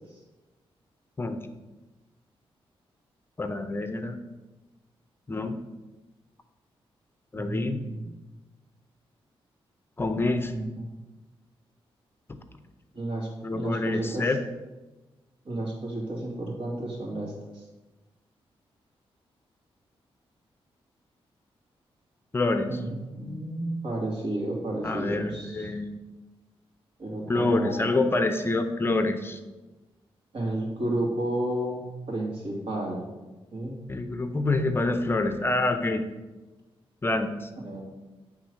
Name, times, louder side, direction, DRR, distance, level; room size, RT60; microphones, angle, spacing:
voice 1, 3.4-4.2 5.3-5.5 7.3-7.8 10.0-10.5 12.3-12.4 13.4-14.4 22.3-22.7 24.8-25.9 27.3-29.4 33.9-36.0 37.0-37.5, left 2 dB, 25° left, 7 dB, 0.5 m, -26 dB
voice 2, 7.3-8.0 10.5-10.6 12.9-14.3 15.4-17.6 22.7-25.7 27.0-27.9 30.3-33.0 33.5-33.8 37.6-37.8, right 1 dB, 65° right, -2 dB, 2.5 m, -32 dB
9.0 x 3.7 x 6.3 m, 1.1 s
wide cardioid pair, 130°, 10 cm